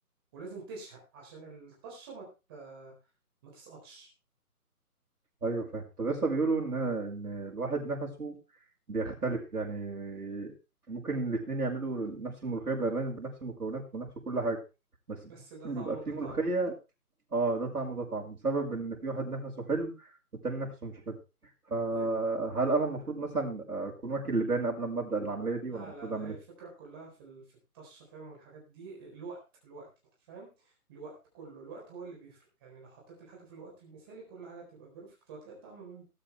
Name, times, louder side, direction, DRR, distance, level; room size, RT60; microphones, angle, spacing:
voice 1, 0.3-2.9 3.4-4.1 15.3-16.4 21.9-22.1 25.6-27.4 27.7-29.9 30.3-36.1, right 4 dB, 15° right, -3 dB, 4.2 m, -48 dB
voice 2, 5.4-8.4 8.9-10.5 10.9-14.6 15.1-15.3 15.6-16.7 17.3-19.9 20.4-21.2 21.7-26.3, right 3 dB, 75° right, -1 dB, 6.0 m, -32 dB
18.5 x 9.1 x 3.5 m, 0.29 s
hypercardioid pair, 170°, 46 cm